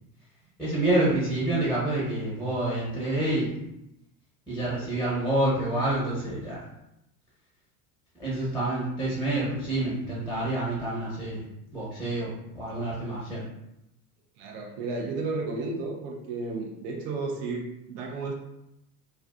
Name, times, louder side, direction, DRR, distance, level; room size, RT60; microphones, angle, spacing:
voice 1, 0.6-3.5 4.5-6.6 8.2-11.4 11.7-13.4, right 1 dB, 5° left, -7 dB, 1.1 m, -27 dB
voice 2, 14.4-18.3, right 3 dB, 45° right, 0 dB, 0.7 m, -33 dB
2.4 x 2.2 x 2.4 m, 0.85 s
figure-of-eight pair, 75°, 46 cm